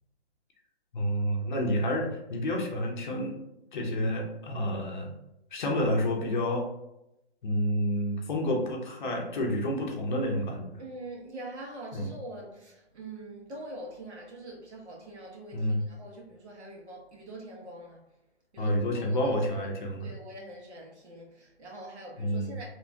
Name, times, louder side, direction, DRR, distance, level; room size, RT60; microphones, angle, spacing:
voice 1, 0.9-3.3 3.7-5.1 5.5-6.7 7.4-10.7 11.9-12.1 15.5-15.8 18.6-20.1 22.2-22.5, equal, 45° left, 0.6 m, -29 dB
voice 2, 10.8-18.0 18.5-19.2 20.0-22.6, right 1 dB, 80° right, 1.2 m, -44 dB
2.9 x 2.2 x 2.6 m
hypercardioid pair, 160°, 33 cm